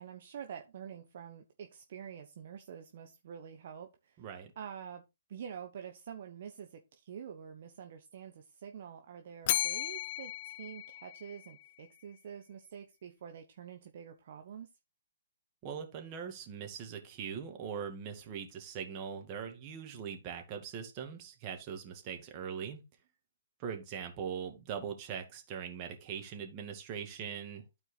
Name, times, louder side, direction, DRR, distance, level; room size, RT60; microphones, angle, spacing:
voice 1, 0.0-4.3 4.6-5.0 5.3-14.7, right 8 dB, 50° right, 1.0 m, -47 dB
voice 2, 4.2-4.5 15.6-22.8 23.6-27.8, right 7 dB, 30° right, 2.2 m, -41 dB
Bell, 9.5-11.7, left 13 dB, 40° left, 0.4 m, -35 dB
12.5 x 4.5 x 4.0 m
figure-of-eight pair, 130°, 0 cm